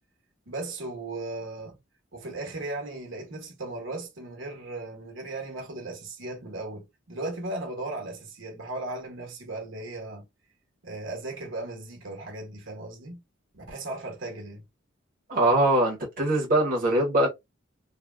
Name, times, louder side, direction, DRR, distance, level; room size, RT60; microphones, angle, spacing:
voice 1, 0.5-1.8 2.1-10.3 10.8-13.2 13.5-14.6, right 2 dB, 75° right, 1.1 m, -36 dB
voice 2, 15.3-17.3, right 1 dB, 45° right, 0.8 m, -22 dB
3.4 x 2.2 x 2.2 m
head